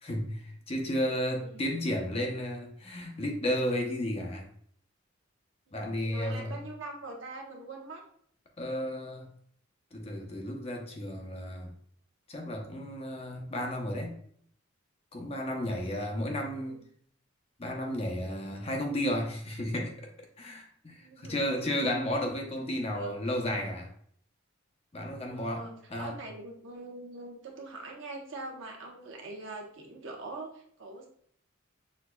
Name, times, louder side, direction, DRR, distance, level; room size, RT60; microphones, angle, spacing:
voice 1, 0.0-4.5 5.7-6.5 8.6-9.3 9.9-11.7 12.3-14.2 15.1-16.8 17.6-20.1 20.4-23.9 24.9-26.2, left 1 dB, 30° left, 1 dB, 0.7 m, -33 dB
voice 2, 1.0-1.6 5.7-8.0 16.3-16.8 21.0-21.7 22.9-23.1 25.2-31.1, right 2 dB, 70° right, 0 dB, 1.0 m, -43 dB
6.3 x 2.8 x 2.2 m, 0.62 s
head